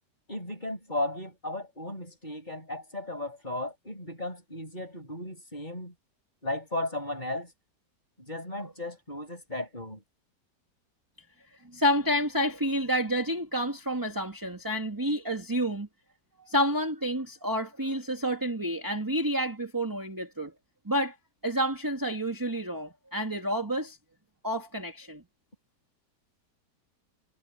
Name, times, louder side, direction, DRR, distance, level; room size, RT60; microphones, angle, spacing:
voice 1, 0.3-5.9 6.4-7.5 8.2-10.0, left 2 dB, 25° left, 7.1 m, -35 dB
voice 2, 11.7-15.9 16.5-20.5 20.9-21.1 21.4-24.0 24.4-25.2, equal, 10° right, 2.4 m, -29 dB
omnidirectional pair, 1.8 m